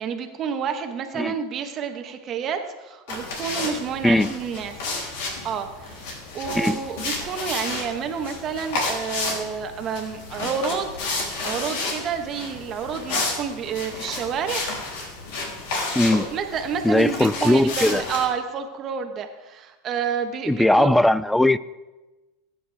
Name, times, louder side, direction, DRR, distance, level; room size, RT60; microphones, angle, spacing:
voice 1, 0.0-4.8 5.4-10.9 11.4-14.6 16.3-20.9, right 7 dB, 35° right, 6 dB, 1.1 m, -29 dB
sound 1, 3.1-18.2, left 3 dB, 75° left, 3.3 m, -31 dB
voice 2, 16.0-16.3 16.8-18.0 20.5-21.6, left 1 dB, 5° left, 18 dB, 0.3 m, -19 dB
19.5 x 9.6 x 3.5 m, 1.1 s
supercardioid pair, 140°, 0 cm